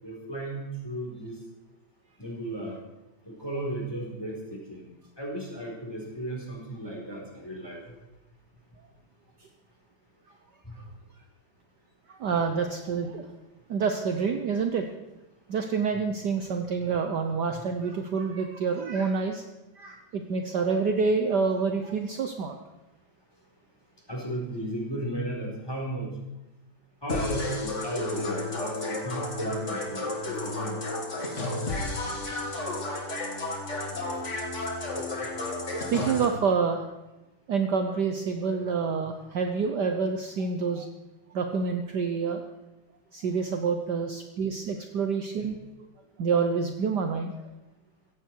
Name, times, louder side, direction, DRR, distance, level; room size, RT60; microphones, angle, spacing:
voice 1, 0.0-1.4 2.2-2.7 3.2-4.8 5.2-7.8 10.6-10.7 24.1-26.1 27.0-30.8 45.4-45.5, right 1 dB, 10° left, -2 dB, 4.2 m, -35 dB
voice 2, 12.1-13.3 13.7-14.8 15.5-19.4 19.7-22.6 35.9-36.8 37.5-40.9 41.3-42.4 43.1-45.9 46.2-47.5, right 5 dB, 60° right, 5 dB, 1.4 m, -27 dB
sound 1, 27.1-36.3, left 2 dB, 35° left, 2.6 m, -32 dB
16.0 x 15.5 x 4.7 m, 1.0 s
omnidirectional pair, 2.3 m